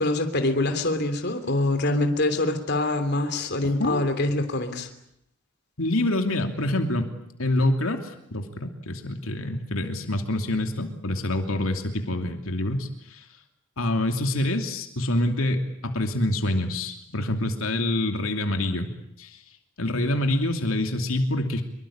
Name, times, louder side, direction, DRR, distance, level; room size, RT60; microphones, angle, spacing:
voice 1, 0.0-4.9, left 2 dB, 55° left, 7 dB, 3.2 m, -25 dB
voice 2, 5.8-7.1 7.4-13.3 13.8-18.9 19.2-19.4 19.8-21.6, left 1 dB, 85° left, 5 dB, 2.9 m, -26 dB
26.0 x 23.5 x 8.8 m, 0.74 s
head